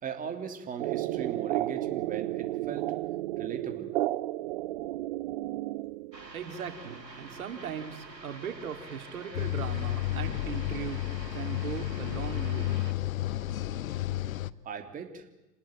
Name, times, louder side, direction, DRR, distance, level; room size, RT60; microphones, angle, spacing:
voice 1, 0.0-2.9 3.4-3.9 14.6-15.3, right 6 dB, 15° right, 4 dB, 2.9 m, -38 dB
sound 1, 0.8-6.3, right 16 dB, 40° right, 1.0 m, -32 dB
sound 2, 6.1-12.9, right 3 dB, 85° right, 3.1 m, -47 dB
voice 2, 6.3-11.0 11.3-12.7, right 8 dB, 60° right, 6 dB, 3.7 m, -39 dB
sound 3, 9.3-14.5, left 14 dB, 55° left, 1.1 m, -32 dB
28.5 x 20.0 x 9.1 m, 1.0 s
figure-of-eight pair, 110°, 49 cm